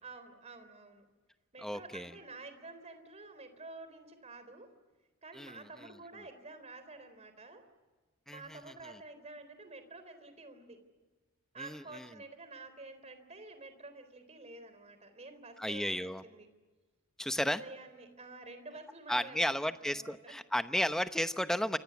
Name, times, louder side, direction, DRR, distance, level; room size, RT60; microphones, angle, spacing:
voice 1, 0.0-1.0 1.5-4.7 5.2-7.6 8.3-10.8 11.5-16.5 17.5-20.4, right 3 dB, 30° right, 10 dB, 3.9 m, -50 dB
voice 2, 1.6-2.1 5.4-5.6 8.3-8.6 11.6-12.1 15.6-16.2 17.2-17.6 19.1-21.8, equal, ahead, 9 dB, 0.9 m, -33 dB
29.0 x 25.5 x 7.2 m, 1.3 s
head